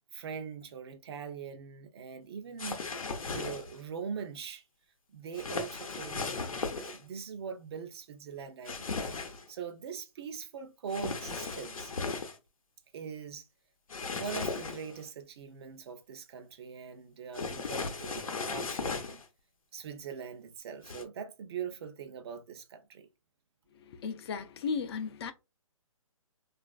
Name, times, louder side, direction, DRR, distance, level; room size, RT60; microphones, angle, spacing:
voice 1, 0.1-2.8 3.2-4.6 5.1-11.9 12.9-13.5 14.1-19.2 19.7-23.1, right 6 dB, 50° right, 0.6 m, -42 dB
sound 1, 2.6-3.8 5.3-7.0 8.6-9.4 10.9-12.4 13.9-15.0 17.3-19.2 20.8-21.0, left 4 dB, 85° left, 0.7 m, -36 dB
voice 2, 23.9-25.3, left 5 dB, 50° left, 0.4 m, -35 dB
3.1 x 2.4 x 2.3 m
hypercardioid pair, 145°, 17 cm